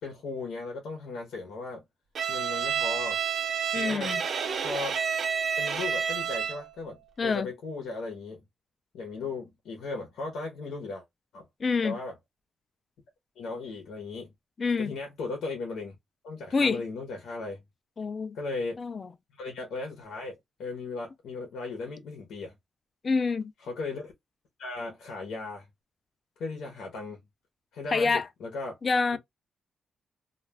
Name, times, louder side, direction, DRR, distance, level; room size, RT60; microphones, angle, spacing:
voice 1, 0.0-1.8 2.3-3.2 3.7-4.1 4.6-5.0 5.6-8.4 8.9-11.0 11.3-11.4 11.8-12.2 13.4-14.3 14.8-16.0 16.2-17.6 18.3-18.8 19.3-22.6 23.6-24.1 24.6-25.7 26.4-27.2 27.7-28.8 29.1-29.2, left 3 dB, 90° left, 0.8 m, -37 dB
Bowed string instrument, 2.1-6.7, right 7 dB, 50° right, 0.5 m, -29 dB
voice 2, 3.7-4.2 7.2-7.5 11.6-12.0 14.6-14.9 16.5-16.8 18.0-18.4 18.8-19.1 23.0-23.5 27.9-28.3 28.8-29.2, left 4 dB, 30° left, 0.3 m, -26 dB
2.3 x 2.3 x 3.2 m
wide cardioid pair, 165°, 0 cm